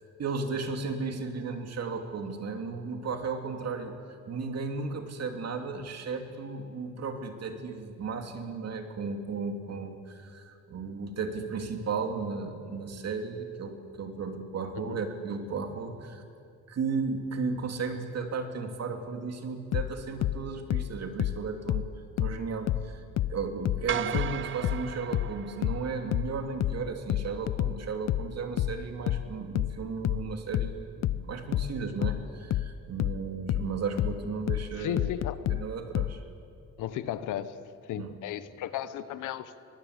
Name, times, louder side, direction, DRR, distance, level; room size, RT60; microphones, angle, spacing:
voice 1, 0.2-3.9 4.3-16.2 16.7-21.9 22.2-23.0 23.3-35.1 35.5-36.2 37.9-38.1, right 4 dB, 55° right, 5 dB, 2.8 m, -34 dB
sound 1, 19.7-22.9 23.2-36.2, left 13 dB, 60° left, 0.6 m, -29 dB
sound 2, 23.9-26.2, right 10 dB, 40° right, 0.6 m, -36 dB
voice 2, 34.7-35.4 36.8-37.6 37.9-39.6, left 11 dB, 90° left, 13 dB, 1.1 m, -34 dB
24.5 x 19.5 x 8.2 m, 2.4 s
cardioid pair, 90°, 30 cm